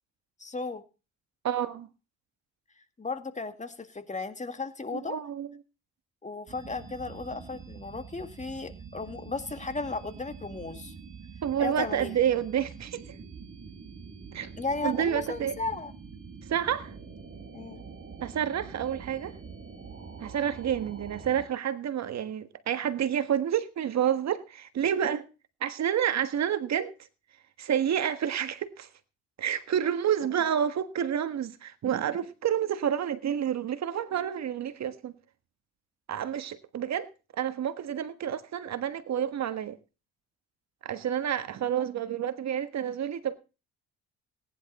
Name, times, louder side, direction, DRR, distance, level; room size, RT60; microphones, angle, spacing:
voice 1, 0.4-0.8 3.0-5.2 6.2-10.9 11.6-12.2 14.6-15.9 17.5-17.8, left 3 dB, 25° left, 2.1 m, -35 dB
voice 2, 1.4-1.9 4.9-5.5 11.4-13.0 14.3-14.5 14.8-15.6 16.5-16.9 18.2-19.4 20.2-25.2 25.6-26.9 27.6-28.9 29.4-35.1 36.1-37.1 37.4-39.8 40.8-43.4, right 9 dB, 60° right, 1.5 m, -29 dB
sound 1, 6.5-21.5, right 5 dB, 45° right, 4.5 m, -45 dB
18.0 x 11.0 x 4.2 m
cardioid pair, 90°, 30 cm